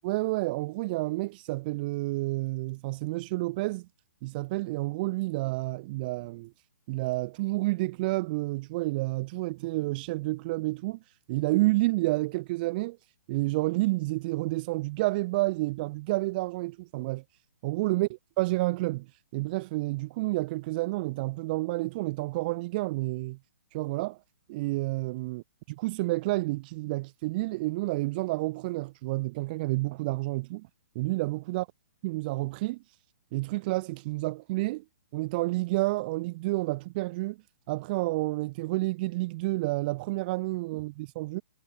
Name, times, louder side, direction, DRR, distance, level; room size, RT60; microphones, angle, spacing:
voice 1, 0.0-3.9 4.2-6.5 6.9-11.0 11.3-13.0 13.3-17.2 17.6-18.1 18.4-19.1 19.3-23.4 23.7-24.2 24.5-25.4 25.8-30.7 30.9-31.7 32.0-32.8 33.3-34.8 35.1-37.4 37.7-41.4, right 21 dB, 40° right, 2.6 m, -29 dB
hypercardioid pair, 140°, 8 cm